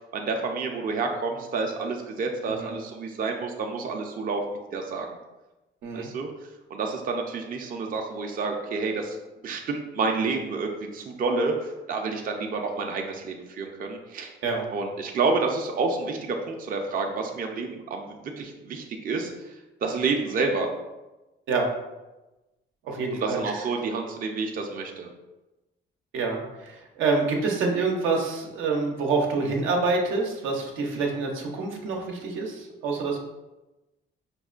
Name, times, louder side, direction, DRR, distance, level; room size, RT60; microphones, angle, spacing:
voice 1, 0.1-4.4 4.7-5.1 5.9-6.3 6.7-9.2 9.4-14.3 14.7-19.3 19.8-20.7 23.1-25.1, right 4 dB, 45° right, 2 dB, 0.5 m, -29 dB
voice 2, 22.8-23.4 26.1-33.2, right 4 dB, 85° right, 1 dB, 0.6 m, -27 dB
5.2 x 2.1 x 2.4 m, 1.1 s
cardioid pair, 90°, 20 cm